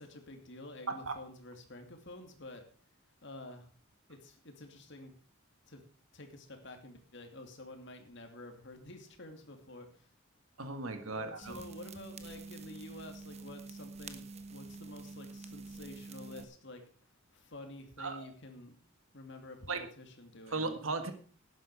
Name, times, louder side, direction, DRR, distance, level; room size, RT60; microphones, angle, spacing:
voice 1, 0.0-2.6 3.2-3.7 4.1-5.1 5.7-5.8 6.1-10.1 11.1-14.3 14.5-16.8 17.3-18.8 19.1-20.6, left 1 dB, 55° left, 5 dB, 2.5 m, -49 dB
voice 2, 10.6-11.6 18.0-18.3 19.7-19.8 20.5-21.1, right 3 dB, 75° right, 8 dB, 1.6 m, -36 dB
sound 1, 11.4-16.4, right 3 dB, 30° right, 1.1 m, -47 dB
12.0 x 10.0 x 4.8 m, 0.44 s
head